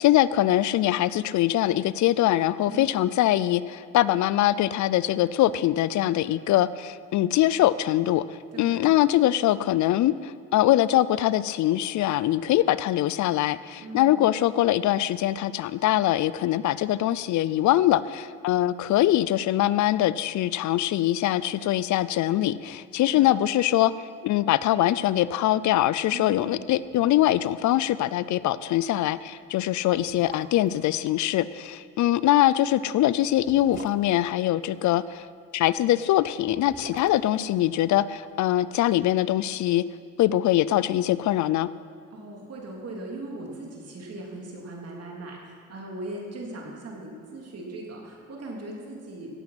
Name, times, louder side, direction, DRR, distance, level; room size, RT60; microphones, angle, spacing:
voice 1, 0.0-8.2 8.6-23.9 24.2-35.3 35.5-39.9 40.2-41.7, left 13 dB, 75° left, 17 dB, 0.5 m, -23 dB
voice 2, 2.7-3.0 8.5-9.0 13.8-14.2 23.1-23.4 26.1-26.7 42.1-49.3, right 2 dB, 55° right, -1 dB, 3.2 m, -39 dB
Water + straw bubbling, 26.8-27.5 27.8-27.9 28.3-28.5 29.2-29.3 29.9-30.8 32.3-35.0 36.3-38.5 38.8-38.9, right 4 dB, 40° right, 1.3 m, -47 dB
17.0 x 7.9 x 5.9 m, 2.3 s
cardioid pair, 90°, 30 cm